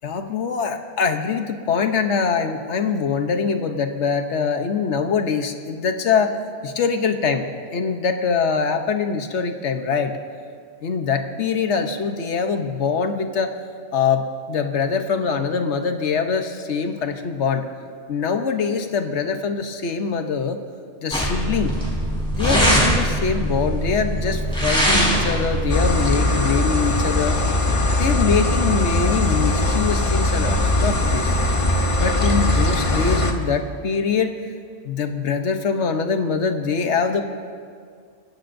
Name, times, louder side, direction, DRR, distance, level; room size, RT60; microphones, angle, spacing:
voice 1, 0.0-6.4 6.6-10.2 10.8-13.5 13.9-17.6 18.1-20.6 21.0-21.8 22.4-27.4 28.0-31.4 32.0-34.4 34.8-37.2, left 5 dB, 90° left, 6 dB, 1.2 m, -23 dB
sound 1, 21.1-26.1, equal, 5° left, 4.5 m, -21 dB
sound 2, 25.7-33.3, left 2 dB, 30° left, 1.1 m, -20 dB
29.0 x 15.5 x 2.6 m, 2.1 s
omnidirectional pair, 1.1 m